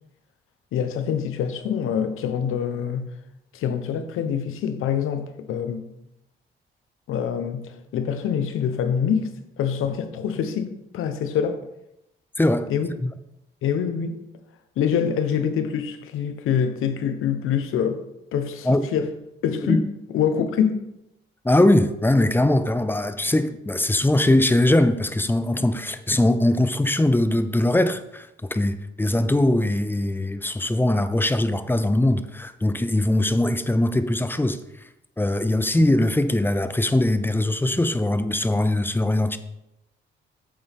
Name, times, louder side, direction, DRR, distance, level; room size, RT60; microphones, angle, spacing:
voice 1, 0.7-3.1 3.5-5.8 7.1-9.3 9.6-11.6 12.7-12.9 13.6-14.2 14.8-18.0 18.3-19.1 19.4-19.8 20.1-20.8 35.8-35.9, left 8 dB, 85° left, 1.0 m, -25 dB
voice 2, 12.4-12.7 13.0-13.1 18.7-18.8 19.7-19.8 21.4-34.6 35.2-39.4, left 1 dB, 10° left, 0.7 m, -21 dB
8.8 x 7.2 x 3.6 m
cardioid pair, 90°, 21 cm